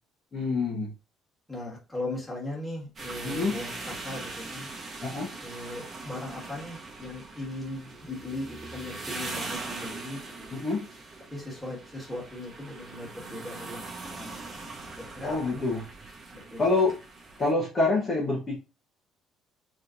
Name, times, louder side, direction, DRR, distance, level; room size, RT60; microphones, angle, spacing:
voice 1, 0.3-0.9 3.2-3.5 5.0-5.3 10.5-10.9 15.2-15.8 16.6-16.9 17.4-18.6, left 3 dB, 25° left, -4 dB, 1.1 m, -26 dB
voice 2, 1.5-4.7 5.4-10.5 11.3-14.7 15.0-15.8 16.3-16.6, left 2 dB, ahead, -6 dB, 1.8 m, -39 dB
sound 1, 3.0-17.5, right 3 dB, 25° right, 1.2 m, -41 dB
4.3 x 3.2 x 2.6 m, 0.30 s
cardioid pair, 155°, 0 cm